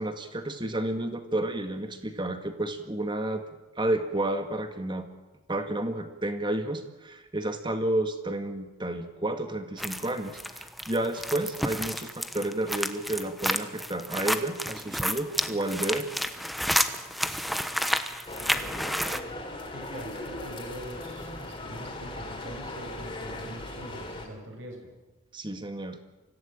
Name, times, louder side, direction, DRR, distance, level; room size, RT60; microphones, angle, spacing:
voice 1, 0.0-3.4 3.8-5.1 5.5-16.1 25.3-26.0, right 1 dB, 25° right, 7 dB, 1.9 m, -31 dB
sound 1, 9.8-19.2, equal, ahead, 1.0 m, -30 dB
sound 2, 18.3-24.3, left 1 dB, 25° left, 3.5 m, -38 dB
voice 2, 19.7-24.9, right 1 dB, 65° right, 3 dB, 6.2 m, -43 dB
25.0 x 16.0 x 8.9 m, 1.1 s
head